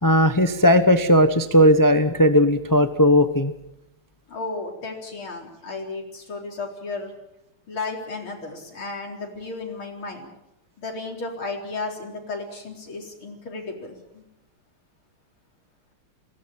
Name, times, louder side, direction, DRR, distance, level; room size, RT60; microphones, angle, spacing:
voice 1, 0.0-3.5, equal, 20° left, 9 dB, 0.5 m, -17 dB
voice 2, 4.3-7.1 7.7-10.3 10.8-14.3, left 3 dB, 70° left, 1 dB, 4.9 m, -34 dB
21.5 x 17.5 x 8.9 m, 0.85 s
omnidirectional pair, 2.4 m